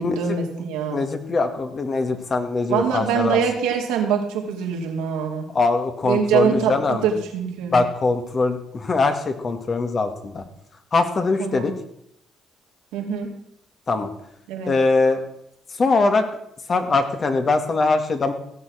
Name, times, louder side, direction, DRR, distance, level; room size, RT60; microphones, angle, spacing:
voice 1, 0.0-1.0 2.7-5.5 6.0-7.8 11.4-11.7 12.9-13.3 14.5-14.7, right 7 dB, 90° right, 1 dB, 2.6 m, -24 dB
voice 2, 0.9-3.4 5.5-7.1 7.7-10.4 10.9-11.7 13.9-14.1 14.7-15.2 15.8-16.2 16.7-18.3, left 3 dB, 40° left, 7 dB, 2.0 m, -22 dB
16.5 x 6.8 x 6.3 m, 0.75 s
supercardioid pair, 70°, 0 cm